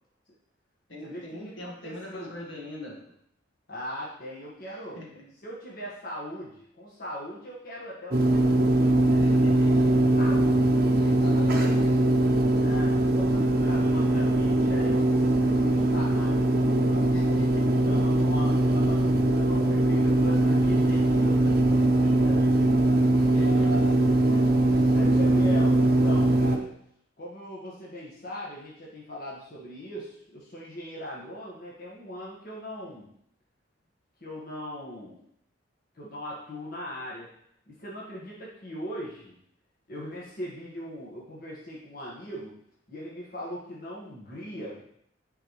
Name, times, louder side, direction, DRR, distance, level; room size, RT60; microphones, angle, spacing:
voice 1, 0.9-3.1 5.0-5.2 9.2-10.0 11.0-12.1 17.1-17.9 20.4-20.5 23.0-23.7 24.6-24.9, left 1 dB, 70° left, -3 dB, 1.9 m, -42 dB
voice 2, 1.6-2.3 3.7-5.0 5.4-9.8 10.2-10.8 11.3-11.9 12.6-17.2 17.8-22.4 23.3-26.7 27.2-33.1 34.2-35.2 35.9-37.3 37.7-39.4 39.9-42.5 42.9-45.0, equal, 45° left, -6 dB, 1.6 m, -40 dB
sound 1, 8.1-26.6, right 1 dB, 50° right, 0.8 m, -22 dB
10.0 x 4.1 x 3.2 m, 0.71 s
head